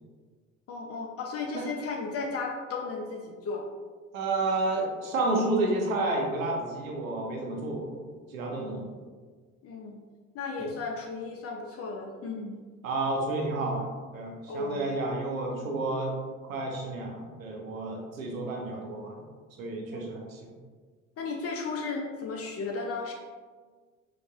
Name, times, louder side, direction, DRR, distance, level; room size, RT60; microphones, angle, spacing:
voice 1, 0.7-3.6 8.5-8.9 9.6-10.0 10.3-12.5 14.5-14.9 19.9-20.1 21.2-23.1, left 4 dB, 40° left, 1 dB, 0.5 m, -35 dB
voice 2, 4.1-7.9 8.3-8.8 12.8-13.9 14.1-16.1 16.4-19.2 19.6-20.4, right 2 dB, 85° right, 0 dB, 0.7 m, -30 dB
4.7 x 2.5 x 2.4 m, 1.5 s
hypercardioid pair, 65°, 40 cm